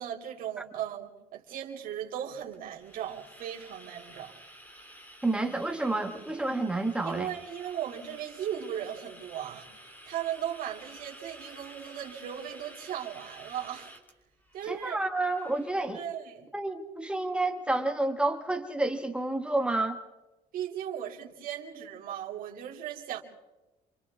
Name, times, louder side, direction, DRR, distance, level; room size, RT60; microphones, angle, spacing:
voice 1, 0.0-4.3 7.0-9.7 10.1-13.9 14.5-15.0 15.9-16.5 20.5-23.2, right 10 dB, 65° right, 0 dB, 3.1 m, -37 dB
sound 1, 2.5-16.0, equal, 10° left, 3.4 m, -51 dB
voice 2, 5.2-7.3 14.6-16.0 16.5-20.0, right 2 dB, 5° right, 4 dB, 1.5 m, -29 dB
29.0 x 26.0 x 3.7 m, 1.1 s
cardioid pair, 135°, 16 cm